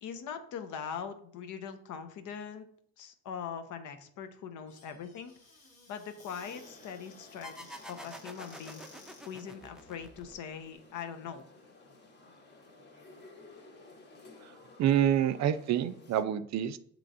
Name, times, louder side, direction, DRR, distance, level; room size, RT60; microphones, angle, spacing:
voice 1, 0.0-2.7 3.0-5.3 5.9-8.8 9.2-11.4, left 7 dB, 80° left, 8 dB, 0.7 m, -41 dB
Squeak / Cupboard open or close, 4.7-9.5, left 3 dB, 55° left, 1.1 m, -57 dB
sound 1, 6.4-16.2, left 3 dB, 35° left, 1.1 m, -55 dB
sound 2, 7.4-10.7, equal, ahead, 0.4 m, -48 dB
voice 2, 14.8-16.8, right 10 dB, 65° right, 12 dB, 0.4 m, -27 dB
6.8 x 3.0 x 2.6 m, 0.62 s
cardioid pair, 90°, 30 cm